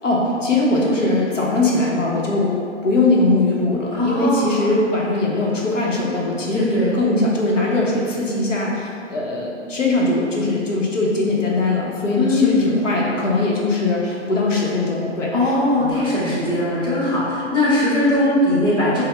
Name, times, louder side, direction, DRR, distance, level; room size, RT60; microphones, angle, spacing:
voice 1, 0.0-2.5 2.8-15.9, left 2 dB, 85° left, -3 dB, 0.8 m, -21 dB
voice 2, 3.9-4.8 6.5-6.9 12.1-12.7 15.3-19.0, left 1 dB, 15° left, -9 dB, 1.1 m, -19 dB
5.4 x 2.0 x 3.2 m, 2.4 s
figure-of-eight pair, 115°, 37 cm